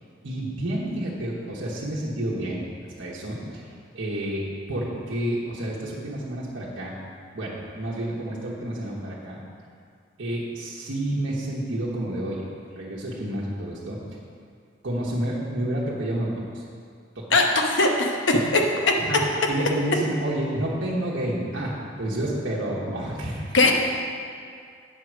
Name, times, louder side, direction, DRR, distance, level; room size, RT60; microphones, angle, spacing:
voice 1, 0.2-2.6 3.0-3.6 3.9-6.9 7.3-9.4 10.2-12.4 12.8-14.0 14.8-16.6 17.1-17.4 18.6-18.7 19.0-23.5, right 1 dB, 85° right, -6 dB, 1.1 m, -29 dB
voice 2, 17.8-18.6 23.5-23.7, left 2 dB, 75° left, 2 dB, 0.9 m, -19 dB
8.4 x 4.7 x 6.3 m, 2.2 s
head